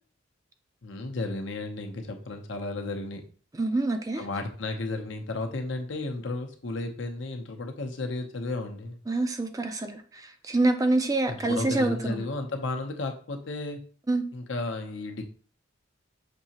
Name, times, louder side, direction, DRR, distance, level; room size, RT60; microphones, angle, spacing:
voice 1, 0.8-3.2 4.2-9.0 11.3-13.8 14.3-15.2, left 2 dB, 65° left, 4 dB, 0.7 m, -33 dB
voice 2, 3.6-4.2 9.1-12.3 14.1-14.2, right 2 dB, 20° right, 7 dB, 0.4 m, -26 dB
6.1 x 2.8 x 2.8 m, 0.42 s
head